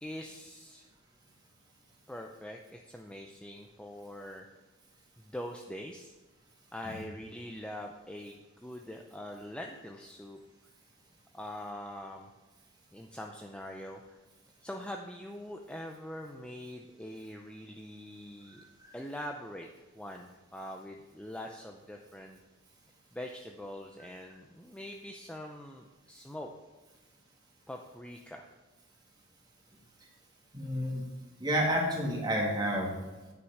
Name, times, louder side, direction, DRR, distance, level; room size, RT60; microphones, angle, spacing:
voice 1, 0.0-0.9 2.1-4.5 5.2-6.1 6.7-10.4 11.3-12.3 12.9-14.2 14.6-18.6 18.9-19.7 19.9-22.4 23.1-26.5 27.7-28.5, left 1 dB, 5° left, 2 dB, 0.5 m, -43 dB
voice 2, 30.5-31.0 31.4-32.9, equal, 20° right, -1 dB, 2.1 m, -30 dB
9.6 x 6.0 x 6.5 m, 1.2 s
head